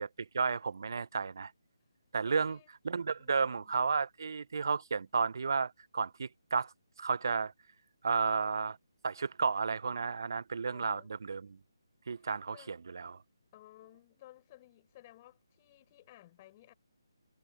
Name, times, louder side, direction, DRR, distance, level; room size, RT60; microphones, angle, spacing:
voice 1, 0.0-1.5 2.1-2.6 2.8-6.7 7.0-7.5 8.0-8.8 9.0-11.6 12.1-13.1, right 5 dB, 55° right, 1.1 m, -32 dB
voice 2, 2.2-2.7 3.2-3.7 10.7-11.1 12.1-12.7 13.5-16.7, left 15 dB, 25° left, 6.6 m, -58 dB
figure-of-eight pair, 150°, 2 cm